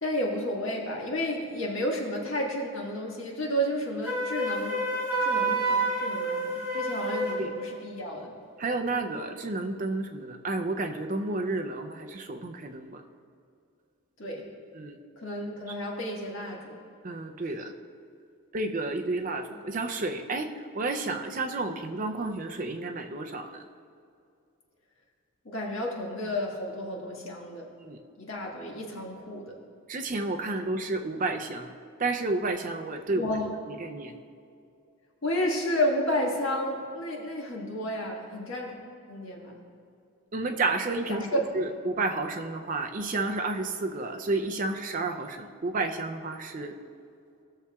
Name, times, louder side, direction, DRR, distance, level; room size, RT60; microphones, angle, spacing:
voice 1, 0.0-4.8 5.2-8.3 14.2-14.4 15.2-16.8 25.5-27.7 28.2-29.4 30.5-30.6 33.1-33.5 35.2-38.8 39.1-39.6 41.1-41.5, equal, 65° left, -2 dB, 1.6 m, -31 dB
Wind instrument woodwind instrument, 4.0-7.5, right 2 dB, 10° right, 2.3 m, -28 dB
voice 2, 8.6-13.0 14.7-15.0 17.0-17.7 18.5-23.6 27.8-28.0 29.9-31.7 32.0-33.3 33.7-34.1 40.3-46.8, right 2 dB, 35° right, 5 dB, 0.4 m, -31 dB
16.5 x 6.8 x 2.3 m, 2.4 s
head